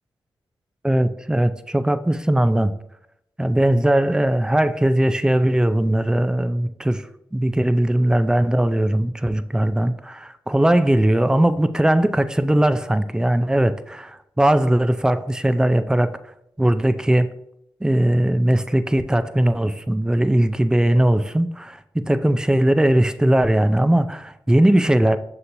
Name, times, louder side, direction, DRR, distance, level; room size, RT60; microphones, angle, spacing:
voice 1, 0.8-2.7 3.4-16.1 16.6-17.3 17.8-25.2, right 1 dB, 5° right, 11 dB, 0.4 m, -19 dB
6.5 x 2.9 x 2.6 m, 0.76 s
supercardioid pair, 40°, 10 cm